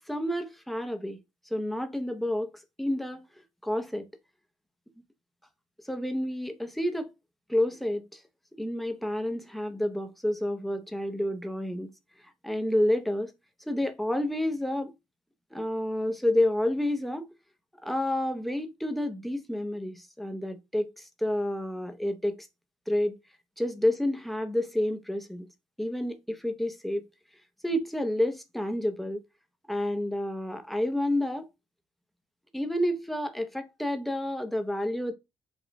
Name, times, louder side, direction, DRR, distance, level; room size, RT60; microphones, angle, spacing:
voice 1, 0.1-1.2 1.5-3.3 3.6-4.1 5.8-7.1 7.5-8.2 8.6-11.9 12.4-13.3 13.7-14.9 15.5-17.3 17.8-22.5 22.9-23.2 23.6-25.5 25.8-27.1 27.6-29.2 29.7-31.5 32.5-35.1, left 1 dB, ahead, 0.8 m, -29 dB
5.0 x 2.4 x 4.0 m
cardioid pair, 110°, 9 cm